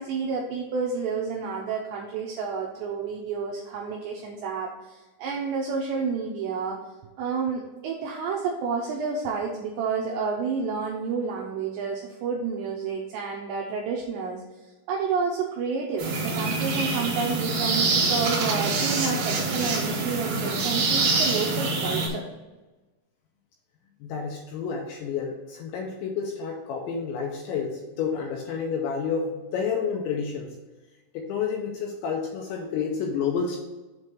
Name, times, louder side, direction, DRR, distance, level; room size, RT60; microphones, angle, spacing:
voice 1, 0.0-6.8 7.2-22.2, right 5 dB, 85° right, -1 dB, 2.5 m, -30 dB
sound 1, 16.0-22.1, right 3 dB, 60° right, 2.8 m, -25 dB
voice 2, 24.0-30.6 31.1-33.6, left 6 dB, 85° left, 1 dB, 2.7 m, -30 dB
7.7 x 3.2 x 5.9 m, 1.2 s
omnidirectional pair, 5.8 m